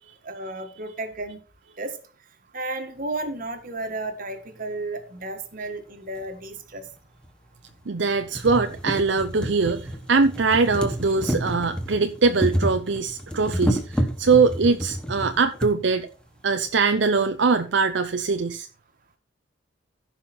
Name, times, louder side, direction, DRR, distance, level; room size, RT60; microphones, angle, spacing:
voice 1, 0.2-1.4 1.8-2.0 2.5-6.8, right 2 dB, 45° right, 1.6 m, -33 dB
sound 1, 6.2-6.3 7.2-7.3 7.8-7.9 8.2-15.7 16.7-16.8 17.0-17.1, equal, 5° left, 1.1 m, -29 dB
voice 2, 7.9-16.1 16.4-18.7, right 4 dB, 65° right, 0.6 m, -22 dB
15.5 x 5.8 x 4.3 m
head